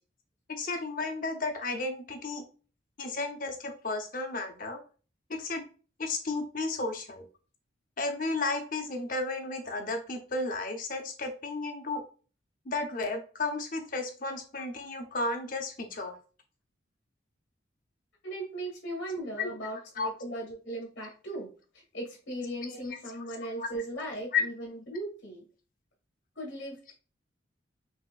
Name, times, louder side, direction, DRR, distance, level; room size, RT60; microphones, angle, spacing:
voice 1, 0.5-2.4 3.0-4.8 5.3-5.6 6.0-7.3 8.0-12.0 12.6-16.2 19.4-19.5 20.0-20.1 23.6-23.7 24.3-24.4, left 3 dB, 45° left, 5 dB, 0.8 m, -33 dB
voice 2, 18.2-21.5 21.7-25.4 26.3-26.9, right 1 dB, 75° left, -1 dB, 1.5 m, -38 dB
6.0 x 2.9 x 2.4 m, 0.37 s
head